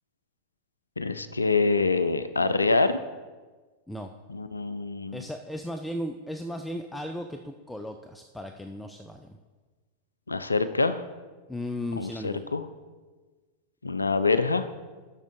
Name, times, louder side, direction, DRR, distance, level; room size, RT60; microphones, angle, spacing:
voice 1, 1.0-3.0 4.3-5.2 10.3-11.0 12.0-12.6 13.8-14.7, left 3 dB, 80° left, 13 dB, 0.4 m, -25 dB
voice 2, 5.1-9.4 11.5-12.4, left 1 dB, 5° left, 6 dB, 0.4 m, -36 dB
10.0 x 6.3 x 3.6 m, 1.3 s
figure-of-eight pair, 90°, 0 cm